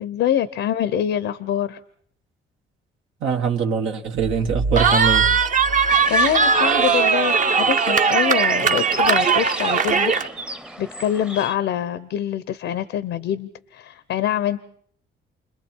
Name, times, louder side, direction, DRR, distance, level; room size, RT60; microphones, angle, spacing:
voice 1, 0.0-1.8 6.1-10.1 10.8-14.6, left 10 dB, 80° left, 0.8 m, -25 dB
voice 2, 3.2-5.3, right 6 dB, 80° right, 1.7 m, -23 dB
sound 1, 4.2-7.0, right 2 dB, 60° right, 1.2 m, -29 dB
Cheering, 4.8-10.3, right 5 dB, 40° right, 0.9 m, -19 dB
sound 2, 5.9-11.6, equal, 5° right, 0.8 m, -35 dB
29.5 x 21.5 x 4.5 m
cardioid pair, 90°, 20 cm